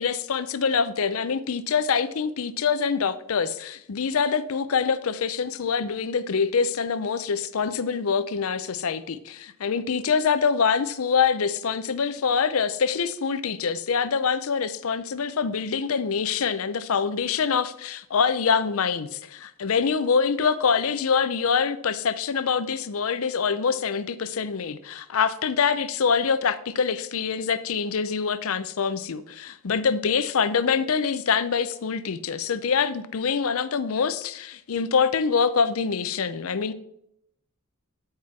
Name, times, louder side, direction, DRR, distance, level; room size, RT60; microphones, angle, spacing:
voice 1, 0.0-36.7, left 6 dB, 75° left, 0.6 m, -25 dB
9.5 x 4.4 x 4.6 m
head